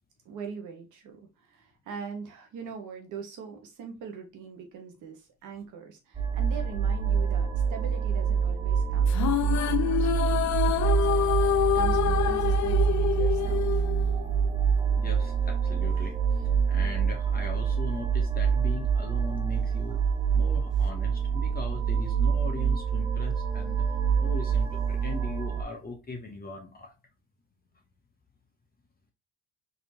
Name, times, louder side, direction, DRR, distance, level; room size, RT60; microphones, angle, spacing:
voice 1, 0.2-13.8, right 6 dB, 80° right, 1.2 m, -42 dB
sound 1, 6.1-25.6, right 7 dB, 15° right, 0.7 m, -26 dB
sound 2, 9.1-14.6, left 10 dB, 65° left, 0.6 m, -27 dB
voice 2, 14.9-23.9 24.2-26.9, left 3 dB, 30° left, 0.9 m, -40 dB
4.0 x 2.9 x 2.8 m
cardioid pair, 90°, 30 cm